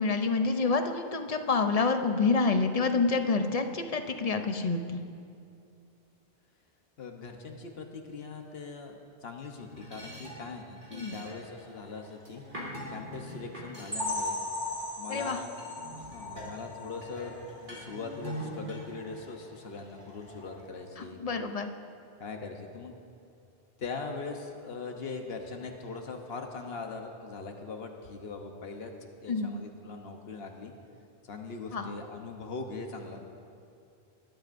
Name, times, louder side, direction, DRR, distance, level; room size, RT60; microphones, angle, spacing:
voice 1, 0.0-5.0 10.9-11.2 15.1-15.4 21.0-21.7 29.3-29.5 31.7-31.9, left 4 dB, 40° left, 6 dB, 0.7 m, -28 dB
voice 2, 7.0-12.4 12.9-14.4 15.0-15.5 15.9-21.2 22.2-22.9 23.8-28.9 29.2-30.7 31.2-33.2, left 4 dB, 75° left, 3 dB, 1.2 m, -41 dB
sound 1, 9.5-15.1 15.6-21.1, equal, 55° right, 3.0 m, -44 dB
sound 2, 13.9-17.5 17.9-18.1 18.5-18.6 19.0-19.1, left 2 dB, 25° right, 3.0 m, -37 dB
20.5 x 12.0 x 2.6 m, 2.5 s
omnidirectional pair, 1.0 m